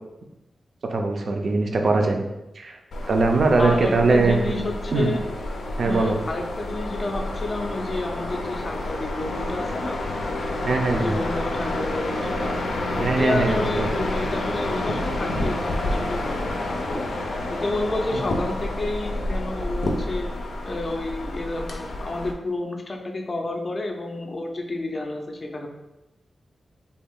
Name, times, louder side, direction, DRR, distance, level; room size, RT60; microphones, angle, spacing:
voice 1, 0.9-2.2 2.6-2.8 3.1-4.5 4.9-5.1 5.8-6.2 10.6-11.2 13.0-13.9 18.1-18.2, right 3 dB, 50° right, 3 dB, 0.4 m, -21 dB
sound 1, 2.9-22.3, left 1 dB, 90° left, 0.5 m, -29 dB
voice 2, 3.6-5.2 5.8-10.0 10.7-12.5 13.0-17.0 17.5-20.3 20.6-25.7, left 2 dB, 30° left, 3 dB, 0.4 m, -30 dB
3.4 x 2.3 x 3.5 m, 0.96 s
wide cardioid pair, 170°, 0 cm